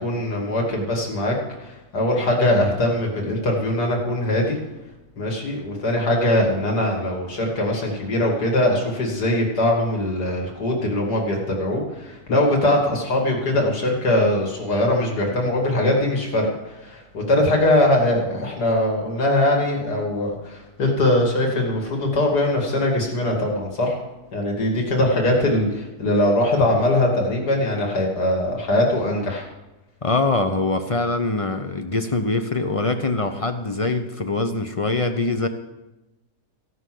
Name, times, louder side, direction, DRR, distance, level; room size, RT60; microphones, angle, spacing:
voice 1, 0.0-1.3 1.6-4.6 5.2-24.0 24.3-29.4, left 1 dB, 70° left, -1 dB, 3.1 m, -21 dB
voice 2, 30.0-35.5, left 3 dB, 45° left, 7 dB, 0.4 m, -23 dB
16.5 x 6.4 x 7.7 m, 1.0 s
omnidirectional pair, 1.8 m